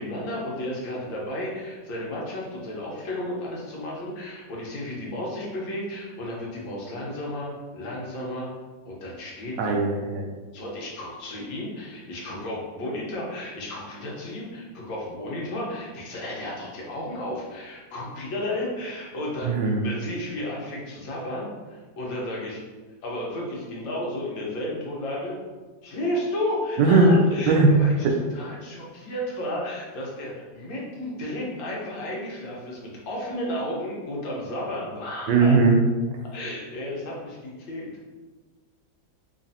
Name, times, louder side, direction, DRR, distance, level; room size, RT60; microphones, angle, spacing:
voice 1, 0.0-8.5 8.8-9.8 10.5-22.6 23.0-25.4 25.8-35.5 36.3-37.9, left 1 dB, 85° left, -4 dB, 1.7 m, -33 dB
voice 2, 9.6-10.3 19.4-19.8 26.8-27.1 27.5-27.8 28.0-28.1 35.3-35.8, right 3 dB, 75° right, 2 dB, 1.2 m, -18 dB
3.9 x 3.1 x 2.7 m, 1.3 s
omnidirectional pair, 2.0 m